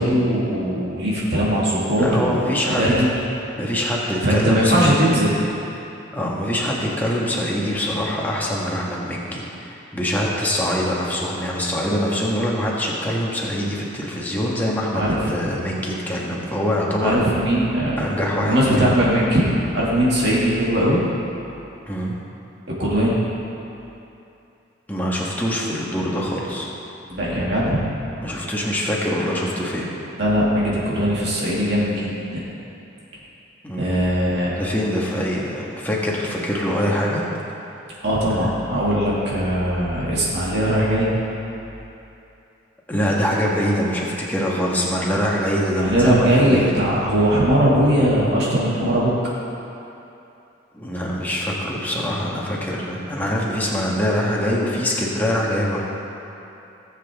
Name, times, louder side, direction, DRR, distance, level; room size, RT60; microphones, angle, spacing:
voice 1, 0.0-3.1 4.2-5.3 14.9-15.3 17.0-18.0 18.4-19.5 19.7-21.0 22.8-23.2 27.1-27.8 30.2-32.4 33.8-34.5 38.0-41.1 45.8-49.1, equal, 60° right, -7 dB, 2.1 m, -20 dB
voice 2, 2.0-2.8 3.6-5.1 6.1-17.2 18.0-19.0 21.9-22.2 24.9-26.7 28.2-29.9 33.6-34.0 34.6-37.2 38.4-38.5 42.9-46.7 50.7-55.8, equal, 10° left, -4 dB, 1.4 m, -24 dB
17.5 x 7.6 x 3.5 m, 2.8 s
head